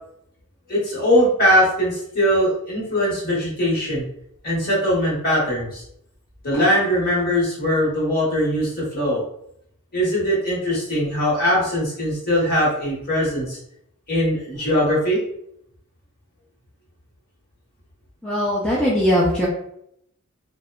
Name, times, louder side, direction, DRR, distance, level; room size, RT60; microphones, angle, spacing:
voice 1, 0.7-4.1 4.4-5.8 6.4-9.2 9.9-13.6 14.1-15.3, equal, 45° left, -6 dB, 1.0 m, -21 dB
voice 2, 18.2-19.5, equal, 5° left, -7 dB, 0.4 m, -20 dB
2.6 x 2.1 x 2.3 m, 0.72 s
head